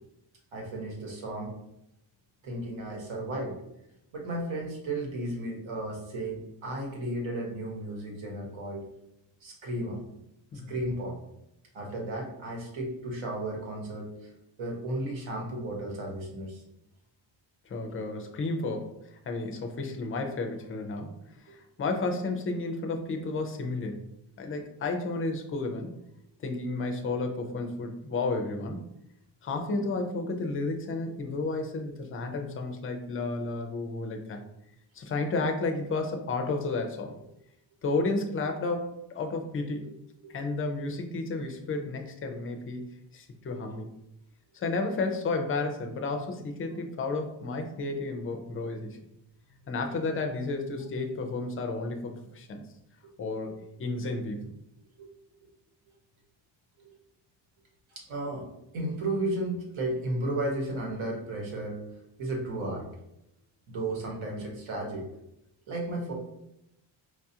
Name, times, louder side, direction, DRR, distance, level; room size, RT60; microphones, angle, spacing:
voice 1, 0.5-1.6 2.4-3.6 4.1-8.8 9.4-10.0 10.7-11.2 11.7-14.1 14.6-16.6 21.5-21.6 40.2-40.3 43.6-43.8 55.0-55.1 56.8-56.9 57.9-58.5 58.7-61.8 62.2-62.9 63.7-65.1 65.7-66.1, right 1 dB, 80° right, -1 dB, 1.2 m, -34 dB
voice 2, 17.7-21.1 21.5-24.0 24.4-25.9 26.4-28.8 29.4-34.4 35.0-37.2 37.8-39.9 40.3-43.9 44.5-49.0 49.7-52.7 53.2-53.5 53.8-54.5, left 3 dB, 30° left, 4 dB, 0.3 m, -32 dB
4.6 x 2.3 x 2.8 m, 0.82 s
wide cardioid pair, 180°, 47 cm